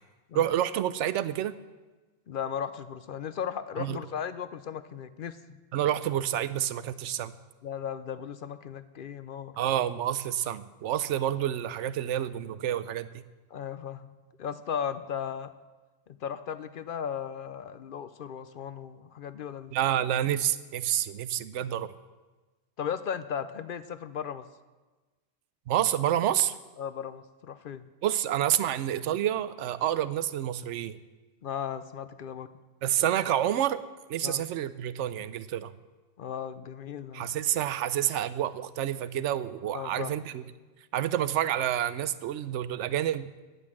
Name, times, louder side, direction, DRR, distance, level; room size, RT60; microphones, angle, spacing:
voice 1, 0.3-1.5 3.8-4.0 5.7-7.3 9.6-13.2 19.7-21.9 25.7-26.6 28.0-31.0 32.8-33.8 34.1-35.7 37.1-40.4 40.9-43.3, right 11 dB, 75° right, 15 dB, 0.9 m, -28 dB
voice 2, 2.3-5.6 7.6-9.5 13.5-15.5 16.1-19.7 22.8-24.5 26.8-27.9 31.4-32.5 34.2-34.4 36.2-37.4 39.7-40.2, left 8 dB, 55° left, 12 dB, 0.6 m, -36 dB
9.8 x 9.6 x 7.5 m, 1.2 s
omnidirectional pair, 1.3 m